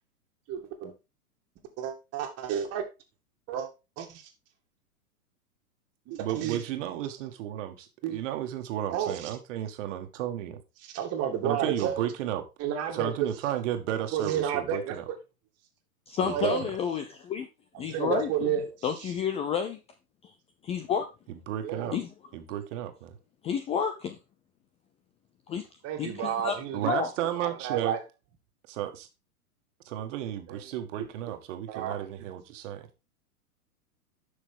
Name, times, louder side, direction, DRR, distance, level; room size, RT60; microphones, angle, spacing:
voice 1, 0.5-0.9 1.8-2.8 3.5-3.7 4.0-4.2 6.1-6.9 8.0-8.2 8.9-9.3 10.8-12.1 12.6-13.3 14.1-15.2 16.2-16.6 17.8-18.8 21.6-21.9 25.8-27.0 27.4-28.0 30.5-30.6 31.0-31.4 31.7-32.1, right 9 dB, 35° right, 2.1 m, -31 dB
voice 2, 6.2-10.6 11.4-12.4 12.9-15.0 16.2-16.7 21.3-22.0 22.3-23.1 26.7-28.0 28.7-29.1 29.9-32.9, right 11 dB, 55° right, 1.8 m, -33 dB
voice 3, 16.1-17.5 17.8-18.5 18.8-19.8 20.6-21.1 21.9-22.1 23.4-24.2 25.5-25.6 26.0-26.6 26.9-27.1, left 7 dB, 15° left, 0.4 m, -30 dB
10.5 x 6.1 x 3.7 m
hypercardioid pair, 120°, 45 cm